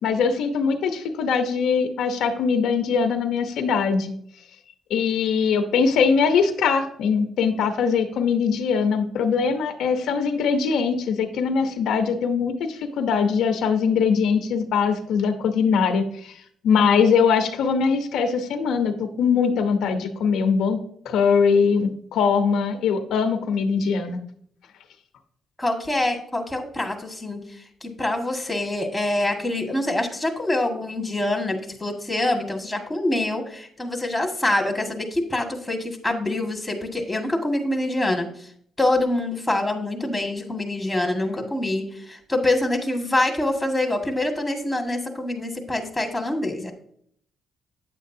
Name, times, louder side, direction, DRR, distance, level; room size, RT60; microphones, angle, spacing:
voice 1, 0.0-4.1 4.9-16.3 16.6-24.2, left 6 dB, 80° left, 6 dB, 0.9 m, -22 dB
voice 2, 25.6-27.5 27.8-38.3 38.8-46.7, left 1 dB, 10° left, 3 dB, 1.8 m, -25 dB
9.4 x 7.6 x 2.7 m, 0.65 s
cardioid pair, 90°, 0 cm